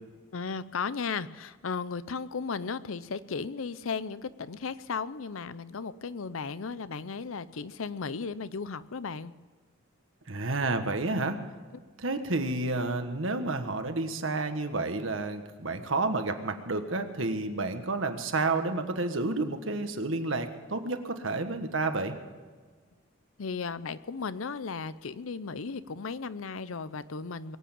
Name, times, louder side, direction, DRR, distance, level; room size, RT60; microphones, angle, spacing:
voice 1, 0.3-9.3 23.4-27.6, left 5 dB, 80° left, 15 dB, 0.6 m, -35 dB
voice 2, 10.3-11.4 12.0-22.1, right 3 dB, 70° right, 7 dB, 1.5 m, -30 dB
22.0 x 8.5 x 7.3 m, 1.5 s
head